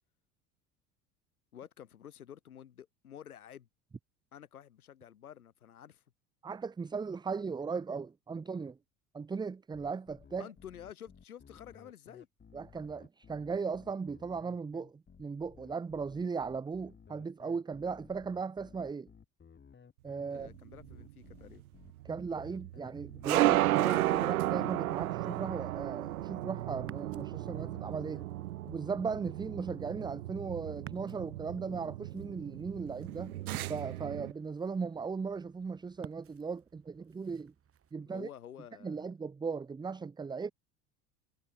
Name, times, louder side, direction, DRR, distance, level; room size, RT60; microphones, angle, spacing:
voice 1, 1.5-3.7 4.3-6.0 10.4-12.3 20.3-21.6 38.0-39.1, left 9 dB, 80° left, 3.4 m, -50 dB
voice 2, 6.4-8.8 9.1-10.5 12.5-19.1 20.0-20.5 22.0-28.3 28.6-33.4 33.7-37.5 37.9-38.3 38.8-40.5, right 5 dB, 10° right, 0.6 m, -37 dB
sound 1, 9.7-28.2, left 6 dB, 25° left, 5.2 m, -57 dB
sound 2, 20.3-34.3, right 16 dB, 75° right, 0.6 m, -34 dB
Ocean, 26.8-37.9, right 8 dB, 30° right, 2.7 m, -55 dB
figure-of-eight pair, 70°, 43 cm